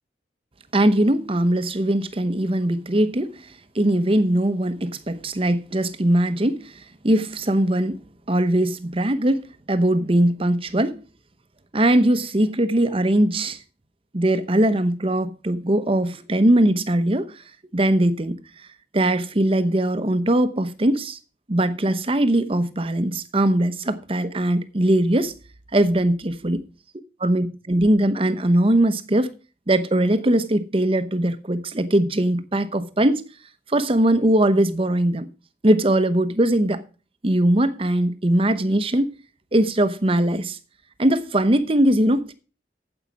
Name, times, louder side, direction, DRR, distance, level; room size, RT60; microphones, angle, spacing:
voice 1, 0.7-3.4 3.7-6.7 7.0-8.0 8.3-11.0 11.7-13.6 14.1-17.3 17.7-18.4 18.9-21.2 21.5-25.3 25.7-26.6 27.2-29.3 29.7-33.2 33.7-35.3 35.6-36.8 37.2-39.1 39.5-40.6 41.0-42.3, right 1 dB, 30° right, 0.9 m, -20 dB
9.3 x 8.0 x 6.0 m
head